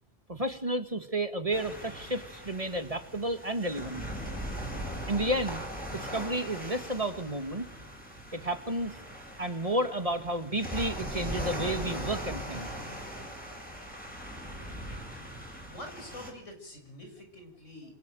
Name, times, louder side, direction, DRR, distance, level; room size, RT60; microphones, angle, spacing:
voice 1, 0.3-4.0 5.1-5.7 5.9-7.7 8.3-9.0 9.4-12.7, right 1 dB, 30° right, 7 dB, 2.0 m, -31 dB
sound 1, 1.5-16.3, equal, 5° left, 7.4 m, -40 dB
voice 2, 15.7-18.0, left 1 dB, 85° left, 4 dB, 6.8 m, -46 dB
27.0 x 21.0 x 9.1 m, 0.76 s
omnidirectional pair, 1.2 m